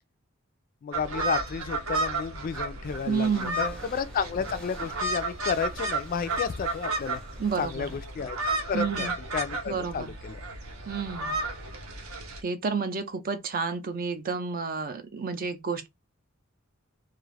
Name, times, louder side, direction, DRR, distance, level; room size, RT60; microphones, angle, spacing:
voice 1, 0.8-7.2 7.6-8.4 8.6-10.4, left 6 dB, 40° left, 0.3 m, -32 dB
sound 1, 0.9-12.4, right 2 dB, 80° right, 0.8 m, -33 dB
sound 2, 2.8-8.1, left 1 dB, 5° left, 0.6 m, -49 dB
voice 2, 3.1-3.7 7.4-7.9 8.7-9.1 9.7-10.1 10.9-11.3 12.4-15.9, right 5 dB, 45° right, 0.5 m, -30 dB
2.4 x 2.4 x 3.2 m
head